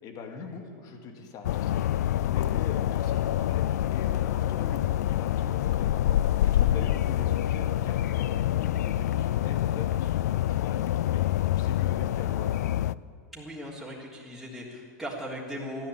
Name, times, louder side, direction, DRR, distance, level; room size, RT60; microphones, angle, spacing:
voice 1, 0.0-1.9 2.2-3.7 3.9-12.6, left 5 dB, 45° left, 4 dB, 2.4 m, -42 dB
sound 1, 1.4-12.9, left 12 dB, 80° left, 0.3 m, -26 dB
voice 2, 13.3-15.9, equal, ahead, -7 dB, 3.4 m, -38 dB
14.5 x 11.0 x 8.7 m, 2.3 s
hypercardioid pair, 105°, 9 cm